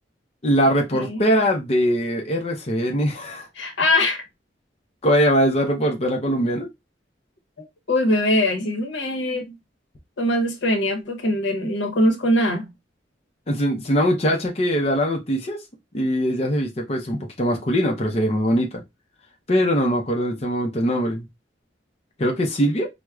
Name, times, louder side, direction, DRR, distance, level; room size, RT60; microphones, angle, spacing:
voice 1, 0.4-3.5 5.0-6.7 13.5-15.6 15.9-18.8 19.5-21.3 22.2-22.9, equal, 35° left, 0.6 m, -21 dB
voice 2, 3.6-4.2 7.6-9.6 10.2-12.7, left 1 dB, 80° left, 0.8 m, -22 dB
4.5 x 2.1 x 2.3 m
head